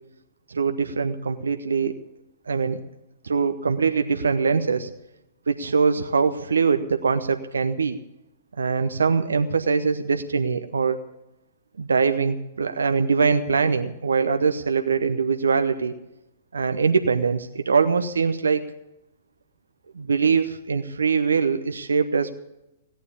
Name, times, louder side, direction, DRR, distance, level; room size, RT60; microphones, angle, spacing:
voice 1, 0.5-1.9 2.5-2.8 3.2-4.9 5.5-8.0 8.6-11.0 11.8-15.9 16.5-18.7 19.9-22.3, right 5 dB, 70° right, 8 dB, 0.8 m, -22 dB
17.0 x 9.5 x 8.4 m, 0.92 s
figure-of-eight pair, 110°, 0 cm